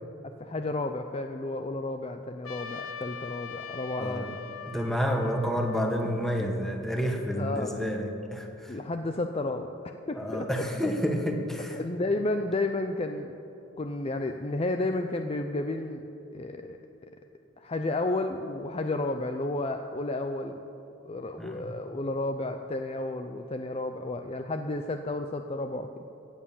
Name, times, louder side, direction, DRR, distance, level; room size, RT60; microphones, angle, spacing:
voice 1, 0.2-4.4 7.4-7.9 8.7-10.7 11.7-13.3 13.8-16.0 16.3-17.1 17.6-20.6 21.0-26.0, left 2 dB, 30° left, 6 dB, 0.5 m, -32 dB
Trumpet, 2.4-6.9, left 6 dB, 85° left, 1.0 m, -42 dB
voice 2, 4.0-4.3 4.7-8.8 10.1-11.8 21.4-21.7, equal, ahead, 3 dB, 1.2 m, -29 dB
16.0 x 8.7 x 7.1 m, 3.0 s
head